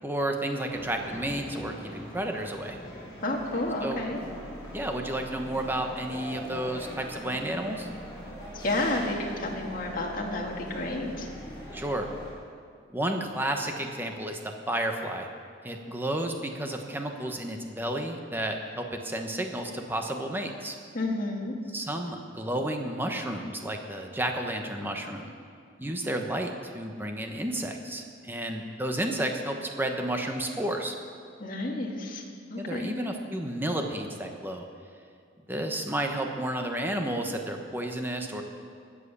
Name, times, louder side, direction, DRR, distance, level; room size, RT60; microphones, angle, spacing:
voice 1, 0.0-2.8 3.8-4.0 4.7-7.9 11.7-12.1 12.9-14.4 14.7-15.3 15.6-20.7 21.7-25.3 25.8-30.9 32.6-34.7 35.5-38.4, right 1 dB, 10° right, 3 dB, 1.1 m, -31 dB
sound 1, 0.7-12.3, equal, 20° left, 4.9 m, -42 dB
voice 2, 3.2-4.2 8.5-11.3 20.9-21.5 31.4-32.2 32.5-33.0, left 2 dB, 45° left, -1 dB, 1.9 m, -31 dB
20.0 x 7.7 x 6.9 m, 2.2 s
head